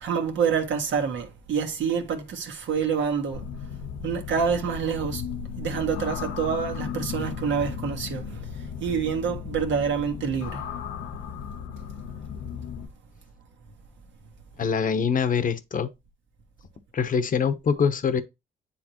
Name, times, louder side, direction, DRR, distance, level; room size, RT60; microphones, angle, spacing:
voice 1, 0.0-3.5 4.0-5.2 5.6-8.5 8.8-10.6, right 6 dB, 70° right, 1.6 m, -27 dB
sound 1, 3.3-12.9, left 7 dB, 90° left, 0.8 m, -36 dB
voice 2, 14.6-15.9 16.9-18.2, left 6 dB, 45° left, 0.9 m, -24 dB
9.7 x 3.4 x 2.9 m
cardioid pair, 90°, 20 cm